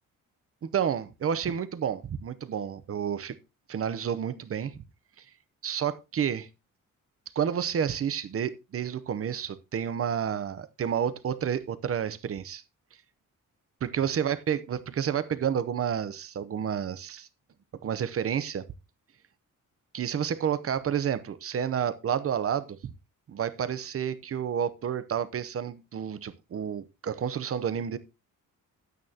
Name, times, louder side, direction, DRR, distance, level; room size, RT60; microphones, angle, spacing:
voice 1, 0.7-3.4 3.7-4.8 5.6-6.5 7.4-12.6 13.8-17.3 17.8-18.7 19.9-22.9 23.3-28.0, right 8 dB, 45° right, 0.8 m, -30 dB
11.0 x 9.4 x 2.8 m
wide cardioid pair, 170°, 32 cm